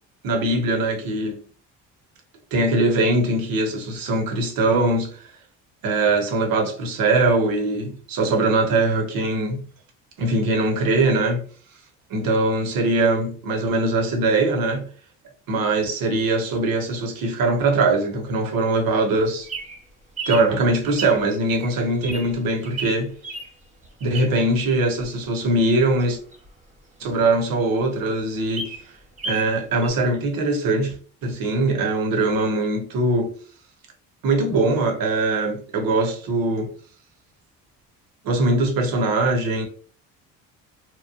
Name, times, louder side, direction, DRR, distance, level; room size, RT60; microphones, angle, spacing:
voice 1, 0.2-1.4 2.5-5.3 5.8-9.6 10.2-11.4 12.1-14.8 15.5-19.5 20.3-23.1 24.0-26.2 27.0-28.7 29.2-31.0 31.2-33.3 34.2-36.7 38.2-39.7, right 2 dB, 60° right, 0.9 m, -21 dB
Bird vocalization bird call bird song, 19.1-24.6 25.0-27.1 27.5-27.6 27.9-28.0 28.3-29.5 29.8-29.9, right 3 dB, 20° right, 0.7 m, -35 dB
3.0 x 2.1 x 2.4 m
supercardioid pair, 70°, 38 cm